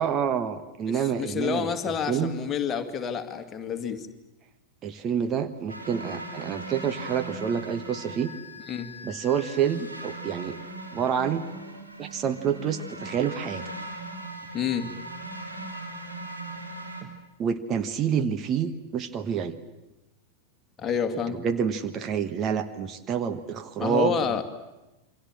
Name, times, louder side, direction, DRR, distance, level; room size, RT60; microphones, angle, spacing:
voice 1, 0.0-1.7 2.1-2.3 4.8-8.3 9.0-10.6 10.9-11.5 12.0-13.7 17.0-17.1 17.4-19.6 21.3-24.2, right 8 dB, 30° right, 9 dB, 1.2 m, -28 dB
voice 2, 0.9-4.1 8.7-8.9 14.5-14.9 20.8-21.4 23.8-24.4, left 7 dB, 25° left, 6 dB, 2.2 m, -29 dB
sound 1, 5.7-17.0, right 1 dB, 85° right, 3.5 m, -39 dB
28.0 x 24.0 x 7.6 m, 1.0 s
figure-of-eight pair, 90°, 0 cm